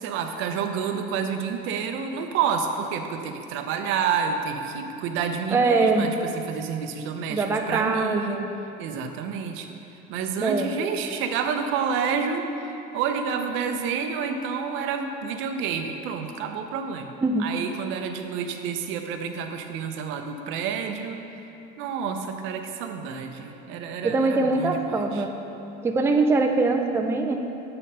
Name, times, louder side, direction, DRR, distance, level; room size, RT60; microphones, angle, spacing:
voice 1, 0.0-8.4 8.8-9.8 10.1-21.2 21.8-25.2, right 6 dB, 70° right, 6 dB, 0.6 m, -29 dB
voice 2, 5.5-6.1 7.3-8.5 10.4-10.7 17.2-17.5 24.0-25.3 25.8-27.4, right 3 dB, 10° right, 4 dB, 0.4 m, -22 dB
8.4 x 3.9 x 5.5 m, 2.9 s
cardioid pair, 130°, 21 cm